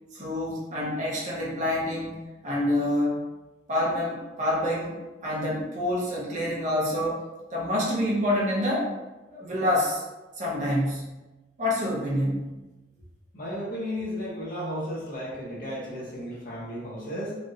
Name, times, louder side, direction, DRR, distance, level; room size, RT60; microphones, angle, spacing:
voice 1, 0.1-3.2 3.7-5.0 5.2-7.2 7.5-8.9 9.3-10.0 10.4-11.2 11.6-12.6, left 1 dB, 40° right, -5 dB, 0.8 m, -27 dB
voice 2, 13.3-17.4, equal, 45° left, -5 dB, 0.9 m, -34 dB
3.1 x 2.5 x 2.6 m, 1.1 s
head